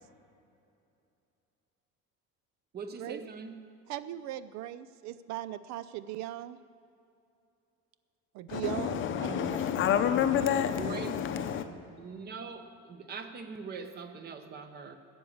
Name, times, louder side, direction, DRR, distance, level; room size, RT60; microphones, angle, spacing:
voice 1, 2.7-3.6 10.8-11.2 12.0-15.0, right 5 dB, 30° right, 8 dB, 0.9 m, -42 dB
voice 2, 3.9-6.6 8.3-9.6, right 13 dB, 60° right, 14 dB, 0.4 m, -38 dB
voice 3, 8.5-11.7, left 9 dB, 35° left, 9 dB, 0.7 m, -29 dB
13.5 x 7.2 x 8.6 m, 2.7 s
cardioid pair, 165°, 33 cm